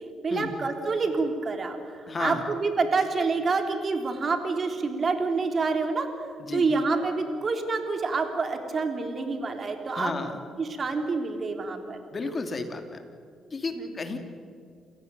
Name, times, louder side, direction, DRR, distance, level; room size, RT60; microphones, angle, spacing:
voice 1, 0.2-6.1 6.5-10.1 10.6-12.0 13.8-13.9, right 4 dB, 40° right, 5 dB, 3.7 m, -27 dB
voice 2, 2.1-2.4 6.4-6.7 9.9-10.4 12.1-13.0 13.5-14.2, left 3 dB, 35° left, 7 dB, 2.9 m, -32 dB
28.5 x 16.5 x 9.4 m, 2.3 s
cardioid pair, 90°, 0 cm